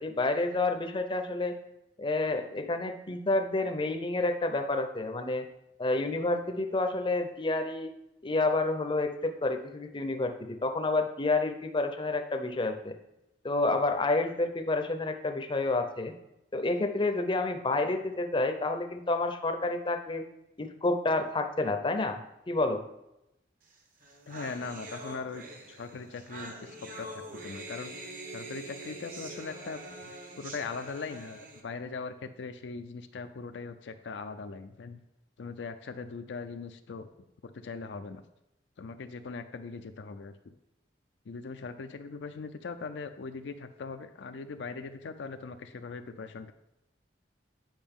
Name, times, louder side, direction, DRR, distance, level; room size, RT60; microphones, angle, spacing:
voice 1, 0.0-1.6 2.0-5.5 5.8-7.9 8.2-12.9 13.4-16.1 16.5-20.2 20.6-22.2 22.5-22.8, left 2 dB, 30° left, 6 dB, 0.6 m, -29 dB
sound 1, 23.7-23.8 24.0-31.6, right 1 dB, 50° right, 1.1 m, -44 dB
voice 2, 24.3-25.4 25.7-35.0 35.4-37.1 37.5-38.2 38.8-40.5 41.3-46.5, left 4 dB, 75° left, 8 dB, 0.4 m, -40 dB
8.9 x 5.0 x 3.6 m, 0.87 s
head